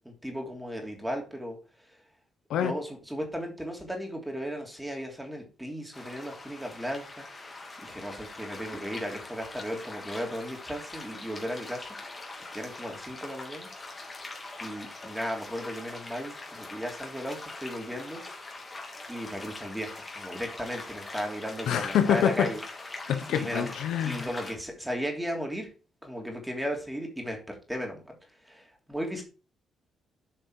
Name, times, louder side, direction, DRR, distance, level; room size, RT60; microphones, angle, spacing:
voice 1, 0.0-2.0 2.6-12.0 12.5-13.7 14.6-18.2 19.1-22.6 22.9-23.0 23.3-23.7 24.0-25.7 26.0-28.1 28.4-29.2, equal, 5° right, 3.1 m, -36 dB
sound 1, 5.9-24.5, left 2 dB, 25° left, 2.7 m, -42 dB
voice 2, 21.7-22.5 23.1-24.3, left 9 dB, 80° left, 1.1 m, -26 dB
8.7 x 5.2 x 4.9 m
cardioid pair, 90°, 0 cm